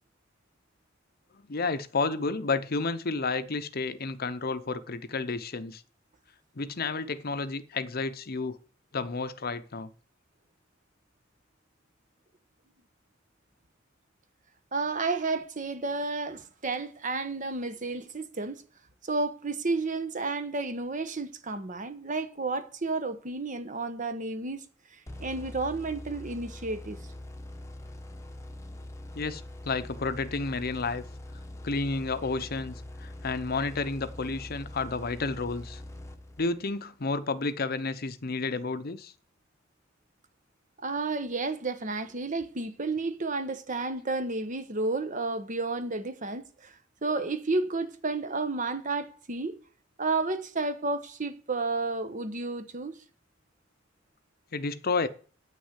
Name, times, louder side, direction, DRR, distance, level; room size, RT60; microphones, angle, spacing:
voice 1, 1.5-5.8 6.6-8.6 8.9-9.9 29.1-31.0 31.6-35.8 36.4-39.1 54.5-55.1, left 3 dB, 50° left, 0.8 m, -31 dB
voice 2, 14.7-18.6 19.0-24.6 24.9-27.0 40.8-49.6 50.0-52.9, right 3 dB, 40° right, 1.1 m, -31 dB
sound 1, 25.1-36.7, left 1 dB, 15° left, 1.0 m, -43 dB
9.1 x 6.4 x 8.1 m
head